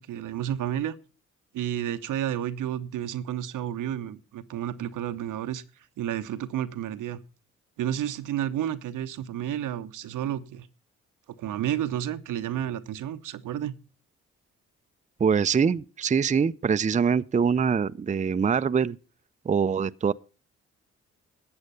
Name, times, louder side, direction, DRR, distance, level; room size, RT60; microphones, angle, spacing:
voice 1, 0.1-0.9 1.5-5.6 6.0-7.2 7.8-10.7 11.4-13.7, right 11 dB, 75° right, 0.8 m, -31 dB
voice 2, 15.2-19.0 19.5-20.1, right 6 dB, 25° right, 0.5 m, -24 dB
12.5 x 8.0 x 5.5 m
hypercardioid pair, 45°, 32 cm